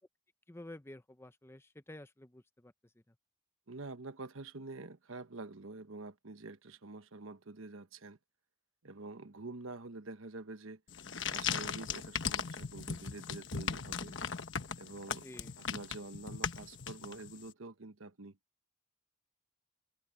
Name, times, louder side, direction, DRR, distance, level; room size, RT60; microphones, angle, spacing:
voice 1, 0.5-2.7 3.1-3.2 15.2-15.6, left 1 dB, 10° left, 0.7 m, -51 dB
voice 2, 3.7-8.2 8.8-10.8 11.3-14.2 14.8-15.3 15.6-18.4, right 3 dB, 80° right, 1.2 m, -47 dB
sound 1, 10.9-17.4, left 6 dB, 65° left, 1.2 m, -38 dB
head